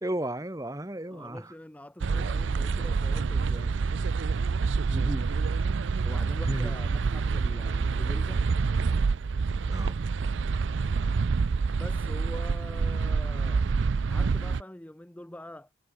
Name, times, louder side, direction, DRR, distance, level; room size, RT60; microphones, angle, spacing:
voice 1, 0.0-1.5 4.9-5.3 6.4-6.7 9.7-10.0, right 1 dB, 15° right, 1.4 m, -33 dB
voice 2, 1.1-3.8 6.0-8.5 11.8-13.7 14.1-15.7, left 1 dB, 10° left, 0.5 m, -44 dB
sound 1, 2.0-14.6, right 4 dB, 75° right, 0.5 m, -27 dB
head